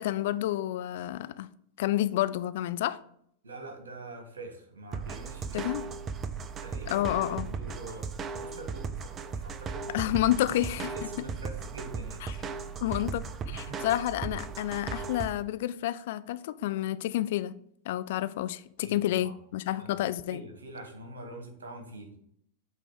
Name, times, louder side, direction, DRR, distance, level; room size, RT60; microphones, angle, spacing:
voice 1, 0.0-1.5 1.8-3.0 5.5-5.8 6.9-7.5 9.9-10.9 12.8-17.5 17.9-20.4, left 14 dB, 55° left, 0.3 m, -29 dB
voice 2, 3.4-5.9 6.6-10.0 10.4-13.0 13.5-13.8 18.8-19.3 19.8-19.9 20.3-22.2, right 1 dB, 70° right, 1.6 m, -45 dB
sound 1, 4.9-15.3, right 5 dB, 25° right, 0.5 m, -37 dB
8.3 x 3.4 x 4.9 m
figure-of-eight pair, 90°, 0 cm